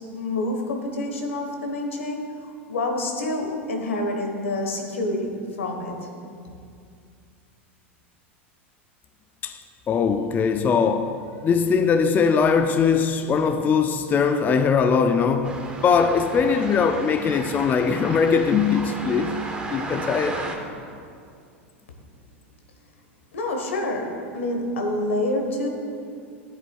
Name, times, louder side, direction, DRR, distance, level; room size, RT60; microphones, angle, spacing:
voice 1, 0.1-2.2 2.7-6.1 23.3-25.7, left 1 dB, 80° left, 1.3 m, -27 dB
voice 2, 9.9-19.4 19.7-20.5, left 6 dB, 25° left, 0.4 m, -21 dB
sound 1, 15.4-20.6, right 2 dB, 15° right, 1.1 m, -34 dB
13.0 x 7.9 x 2.4 m
hypercardioid pair, 95°, 7 cm